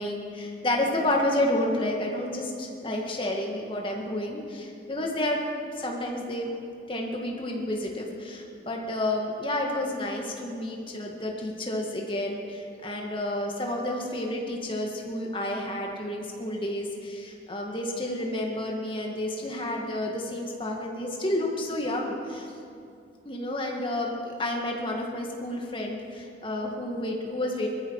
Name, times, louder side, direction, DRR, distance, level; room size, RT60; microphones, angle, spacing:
voice 1, 0.0-5.4 5.8-6.5 6.9-22.5 23.3-27.7, left 1 dB, 25° left, 0 dB, 2.0 m, -30 dB
20.5 x 14.0 x 4.8 m, 2.5 s
head